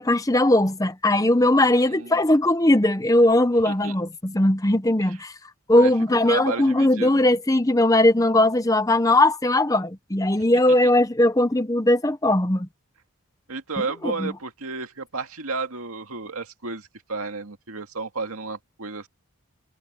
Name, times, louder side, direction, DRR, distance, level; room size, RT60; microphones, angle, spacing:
voice 1, 0.0-5.3 5.7-12.7 14.0-14.3, left 1 dB, 15° left, 0.8 m, -19 dB
voice 2, 1.8-2.2 3.6-3.9 5.0-5.2 5.8-7.2 10.8-10.9 13.5-19.1, right 3 dB, 80° right, 2.2 m, -32 dB
head